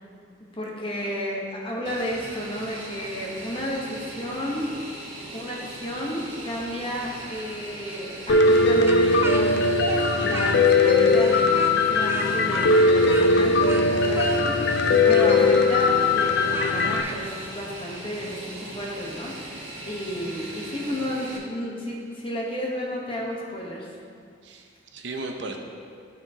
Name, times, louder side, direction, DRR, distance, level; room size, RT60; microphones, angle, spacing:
voice 1, 0.6-4.7 5.3-24.0, equal, 30° left, -3 dB, 1.1 m, -32 dB
Fixed-wing aircraft airplane, 1.8-21.4, right 1 dB, 80° right, 1.5 m, -39 dB
Piano, 8.3-17.0, left 3 dB, 60° left, 0.4 m, -19 dB
Speech, 8.9-10.9 11.2-17.2, right 2 dB, 10° right, 0.4 m, -36 dB
voice 2, 10.2-10.5 19.8-20.0 24.4-25.6, right 2 dB, 65° right, 3 dB, 0.6 m, -37 dB
12.0 x 4.4 x 2.8 m, 2.3 s
head